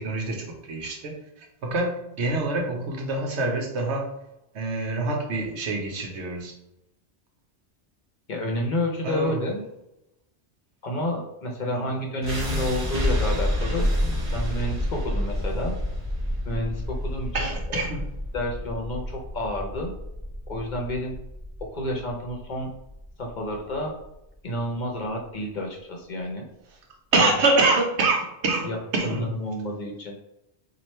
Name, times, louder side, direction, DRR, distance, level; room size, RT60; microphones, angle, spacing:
voice 1, 0.0-4.1 4.5-6.5 9.0-9.4 11.7-11.9 17.3-18.0 27.1-29.3, right 2 dB, 85° right, 2 dB, 1.1 m, -26 dB
voice 2, 8.3-9.6 10.8-13.9 14.3-15.7 16.4-17.8 18.3-19.9 20.5-21.2 21.7-22.7 23.2-23.9 24.4-26.5 27.2-27.3 28.6-30.1, left 1 dB, 50° left, 0 dB, 0.7 m, -30 dB
sound 1, 12.2-24.3, left 1 dB, 30° right, 1.1 m, -29 dB
3.1 x 2.6 x 4.2 m, 0.87 s
omnidirectional pair, 1.1 m